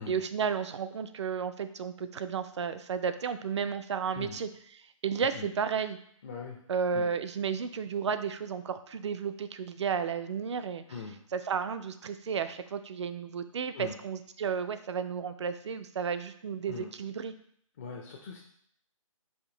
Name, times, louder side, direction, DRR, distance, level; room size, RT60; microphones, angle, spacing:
voice 1, 0.1-6.0 6.7-10.8 11.3-17.3, right 6 dB, 55° right, 11 dB, 0.4 m, -33 dB
voice 2, 6.2-6.6 6.9-7.1 10.9-11.2 13.7-14.0 16.7-16.9 17.8-18.4, left 5 dB, 25° left, -1 dB, 0.4 m, -41 dB
5.0 x 2.6 x 3.8 m, 0.65 s
hypercardioid pair, 155°, 18 cm